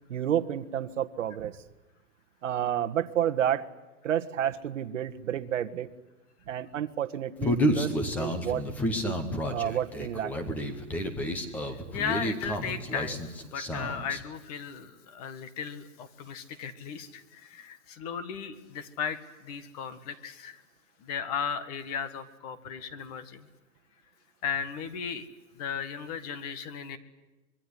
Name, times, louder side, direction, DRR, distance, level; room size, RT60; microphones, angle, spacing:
voice 1, 0.1-1.5 2.4-3.7 4.0-5.9 6.5-8.6 9.0-9.2 9.5-10.5, right 10 dB, 55° right, 10 dB, 1.6 m, -30 dB
Human voice, 7.4-14.2, equal, 5° left, 0.8 m, -30 dB
voice 2, 11.7-20.6 21.0-23.5 24.4-25.3 25.5-27.0, left 7 dB, 25° left, 12 dB, 1.7 m, -36 dB
25.5 x 22.5 x 10.0 m, 1.1 s
hypercardioid pair, 170°, 44 cm